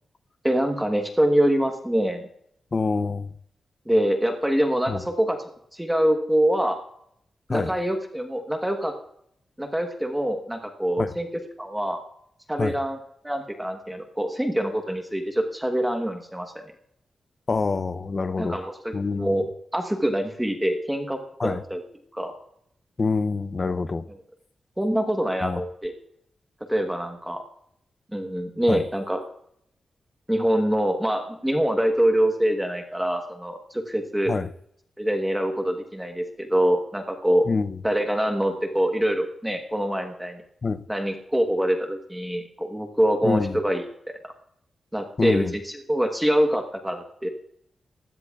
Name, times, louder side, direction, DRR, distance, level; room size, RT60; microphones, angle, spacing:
voice 1, 0.4-2.2 3.9-6.8 7.5-8.9 9.6-11.3 11.6-12.0 12.5-13.0 13.2-16.6 18.4-19.5 19.7-21.8 22.1-22.3 24.8-25.9 26.7-27.4 28.1-29.2 30.3-34.3 35.0-37.4 37.8-40.4 40.9-44.3 44.9-47.3, equal, 5° right, 1.2 m, -25 dB
voice 2, 2.7-3.3 4.9-5.0 7.5-7.7 11.0-11.1 12.6-12.8 17.5-18.6 18.9-19.4 21.4-21.6 23.0-24.0 25.4-25.6 28.7-28.8 34.3-34.5 37.4-37.8 40.6-40.8 43.2-43.6 45.2-45.5, left 4 dB, 30° left, 0.6 m, -26 dB
22.0 x 16.5 x 2.4 m
wide cardioid pair, 180°, 0 cm